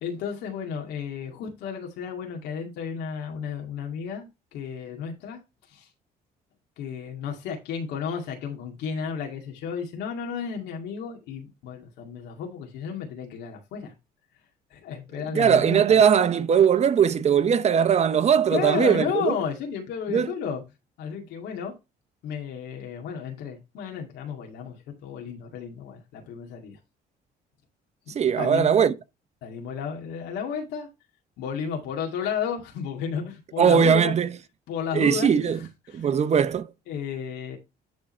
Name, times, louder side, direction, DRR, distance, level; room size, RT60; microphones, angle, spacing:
voice 1, 0.0-5.4 5.7-5.9 6.8-13.9 14.7-16.0 18.5-20.6 21.0-21.7 22.2-26.8 28.1-28.7 29.4-30.9 31.4-34.1 34.7-36.0 36.9-37.6, left 7 dB, 80° left, 2.2 m, -33 dB
voice 2, 15.3-19.4 20.1-20.3 28.1-28.9 33.6-34.3 34.9-35.6 35.9-36.7, right 7 dB, 40° right, 0.8 m, -20 dB
10.5 x 3.8 x 4.4 m
cardioid pair, 110°, 17 cm